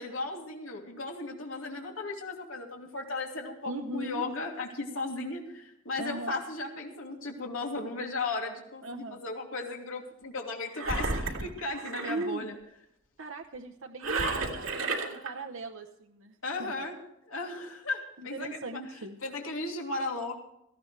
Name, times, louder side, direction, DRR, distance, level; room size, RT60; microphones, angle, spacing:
voice 1, 0.0-12.6 16.4-16.9 17.3-18.8 19.2-20.3, left 3 dB, 85° left, 1 dB, 2.9 m, -36 dB
voice 2, 3.6-4.3 6.0-6.4 8.8-9.3 12.0-12.5 13.2-16.7 18.2-19.2, right 2 dB, 70° right, 3 dB, 0.9 m, -39 dB
Engine, 10.7-12.3 14.0-15.3, right 3 dB, 85° right, 2.4 m, -32 dB
18.0 x 15.0 x 3.3 m, 0.79 s
head